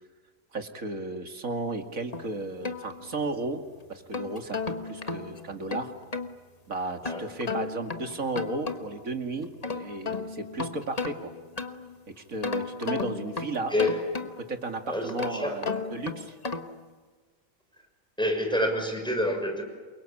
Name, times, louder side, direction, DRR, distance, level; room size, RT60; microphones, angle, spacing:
voice 1, 0.5-3.6 3.9-5.9 6.7-11.3 12.2-13.7 14.4-16.4, right 3 dB, 70° right, 5 dB, 2.8 m, -34 dB
sound 1, 2.1-3.5 3.9-6.3 7.0-9.1 9.4-12.0 12.4-14.6 15.1-16.8, left 4 dB, 30° left, 1.4 m, -34 dB
voice 2, 14.9-15.5 18.2-19.6, left 1 dB, 5° left, 4 dB, 6.1 m, -27 dB
29.0 x 23.5 x 8.6 m, 1.5 s
omnidirectional pair, 1.5 m